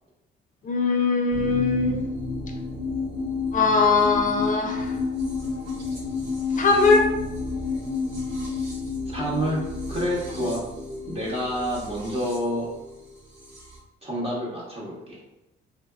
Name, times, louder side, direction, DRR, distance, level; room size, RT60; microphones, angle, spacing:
voice 1, 0.6-2.0 3.5-4.9 6.6-7.1, left 4 dB, 40° left, 2 dB, 0.4 m, -21 dB
sound 1, 1.3-13.8, left 4 dB, 70° right, 1.1 m, -31 dB
voice 2, 9.1-9.6 9.9-10.6 11.0-12.7 14.0-15.2, equal, 30° right, -6 dB, 0.8 m, -28 dB
2.8 x 2.1 x 2.3 m, 0.96 s
cardioid pair, 90°, 20 cm